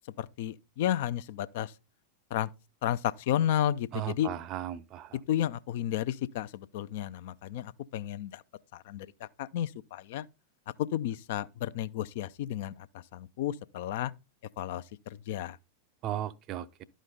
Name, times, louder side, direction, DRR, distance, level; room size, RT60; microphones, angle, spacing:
voice 1, 0.2-1.7 2.3-2.5 2.8-4.3 5.3-8.4 8.7-10.3 10.8-14.1 14.6-15.6, left 11 dB, 50° left, 0.4 m, -32 dB
voice 2, 3.9-5.2 16.0-16.8, right 11 dB, 35° right, 0.5 m, -36 dB
11.5 x 5.1 x 3.8 m
figure-of-eight pair, 90°, 0 cm